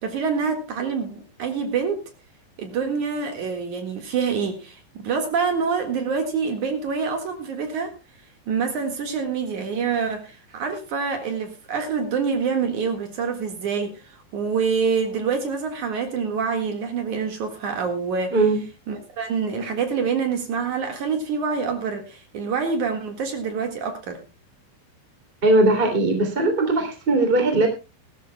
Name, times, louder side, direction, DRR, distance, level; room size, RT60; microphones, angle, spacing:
voice 1, 0.0-2.1 2.6-8.0 8.5-18.4 18.9-24.2, right 5 dB, 55° right, 2.3 m, -26 dB
voice 2, 18.3-18.6 25.4-27.7, right 2 dB, 15° right, 2.2 m, -19 dB
21.0 x 13.5 x 2.2 m
omnidirectional pair, 5.7 m